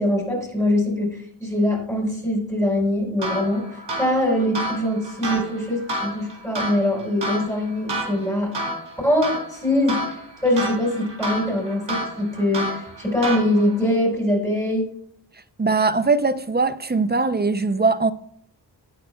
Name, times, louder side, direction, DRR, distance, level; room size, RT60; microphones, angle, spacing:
voice 1, 0.0-8.5 9.0-10.0 10.4-14.8, left 1 dB, 5° left, 5.1 m, -23 dB
sound 1, 3.2-13.8, right 1 dB, 90° right, 3.4 m, -31 dB
voice 2, 15.6-18.1, right 3 dB, 25° right, 0.5 m, -21 dB
18.5 x 8.8 x 2.3 m
wide cardioid pair, 120°, 42 cm